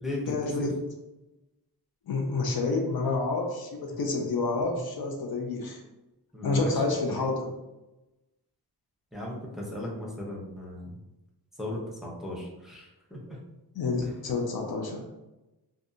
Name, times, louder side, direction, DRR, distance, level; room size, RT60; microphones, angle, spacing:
voice 1, 0.3-0.8 2.1-5.8 6.4-7.5 13.7-15.1, left 3 dB, 65° left, 2 dB, 0.5 m, -29 dB
voice 2, 6.3-6.7 7.1-7.2 9.1-9.4 9.7-10.9 11.6-13.4 14.0-14.1, left 1 dB, ahead, -4 dB, 0.7 m, -36 dB
2.6 x 2.3 x 2.5 m, 1.0 s
wide cardioid pair, 70°, 40 cm